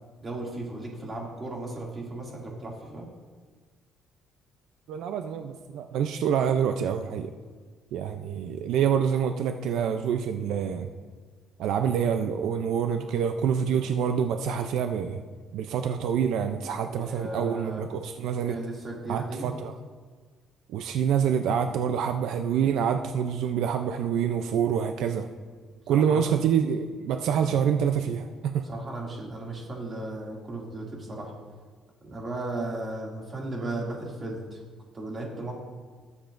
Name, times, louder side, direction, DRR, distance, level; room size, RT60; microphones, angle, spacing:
voice 1, 0.2-3.1 16.8-17.8 18.4-19.6 25.9-26.2 27.3-27.6 28.6-31.3 32.0-34.6 34.9-35.5, right 2 dB, 30° right, -2 dB, 2.5 m, -36 dB
voice 2, 4.9-7.3 7.9-10.9 11.6-15.2 15.5-18.6 19.1-19.8 20.7-25.3 25.9-28.6, right 8 dB, 80° right, 6 dB, 0.5 m, -26 dB
20.5 x 7.1 x 2.6 m, 1.5 s
cardioid pair, 130°, 0 cm